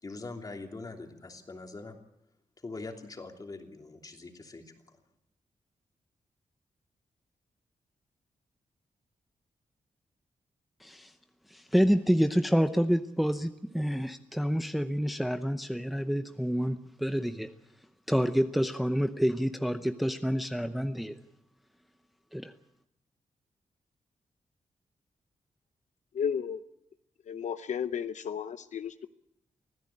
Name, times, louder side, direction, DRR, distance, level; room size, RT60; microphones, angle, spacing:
voice 1, 0.0-2.0 2.6-5.0, left 3 dB, 30° left, 3 dB, 3.0 m, -43 dB
voice 2, 10.8-11.1 11.5-17.5 18.1-21.2 22.3-22.5, equal, ahead, 8 dB, 0.7 m, -28 dB
voice 3, 26.1-26.6 27.3-29.1, left 7 dB, 70° left, 11 dB, 0.8 m, -33 dB
25.0 x 16.0 x 8.7 m, 0.80 s
wide cardioid pair, 160°, 13 cm